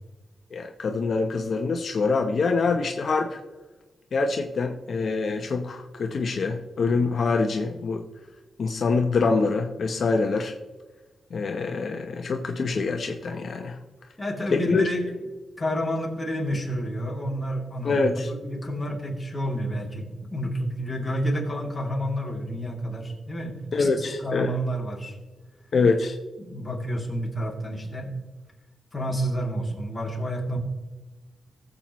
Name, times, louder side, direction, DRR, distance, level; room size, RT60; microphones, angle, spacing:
voice 1, 0.5-3.4 4.1-8.0 8.6-10.5 11.3-13.8 14.5-14.8 17.8-18.3 23.7-24.5 25.7-26.1, left 4 dB, 55° left, 3 dB, 0.8 m, -25 dB
voice 2, 14.2-15.0 15.6-25.2 26.4-28.1 28.9-30.6, equal, 15° left, -2 dB, 2.8 m, -29 dB
19.5 x 7.6 x 3.1 m, 1.2 s
wide cardioid pair, 125°, 0 cm